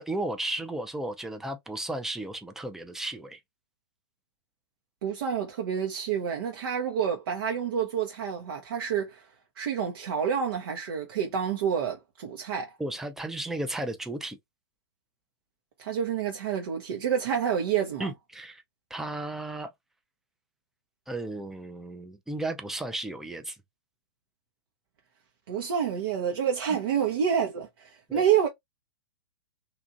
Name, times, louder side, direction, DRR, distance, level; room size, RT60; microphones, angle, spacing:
voice 1, 0.0-3.4 12.8-14.4 18.0-18.6 18.9-19.7 21.1-23.6 28.1-28.2, right 1 dB, 5° right, 0.5 m, -34 dB
voice 2, 5.0-9.2 9.6-12.7 15.8-18.1 25.5-28.5, right 8 dB, 60° right, 0.8 m, -28 dB
2.9 x 2.5 x 2.5 m
hypercardioid pair, 115°, 14 cm